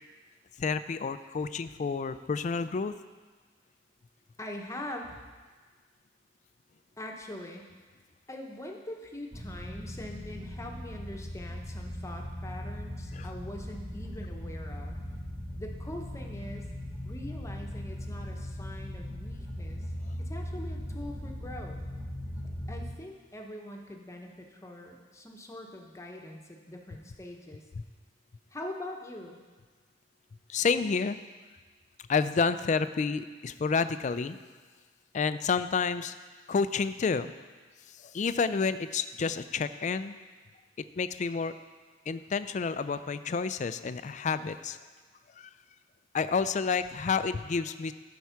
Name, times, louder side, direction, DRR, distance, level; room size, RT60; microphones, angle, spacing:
voice 1, 0.6-2.9 13.1-13.3 30.5-31.2 32.1-34.4 35.1-36.1 36.5-37.3 37.9-40.2 41.0-41.6 42.1-44.8 45.4-45.5 46.1-47.9, left 5 dB, 40° left, 12 dB, 0.4 m, -29 dB
voice 2, 4.4-5.2 7.0-7.7 8.3-15.0 15.6-16.7 17.0-19.8 20.2-21.8 22.7-27.6 28.5-29.4, left 1 dB, 15° left, 1 dB, 1.0 m, -43 dB
sound 1, 9.3-22.9, left 1 dB, 20° right, 1.7 m, -39 dB
14.0 x 4.7 x 5.8 m, 1.4 s
head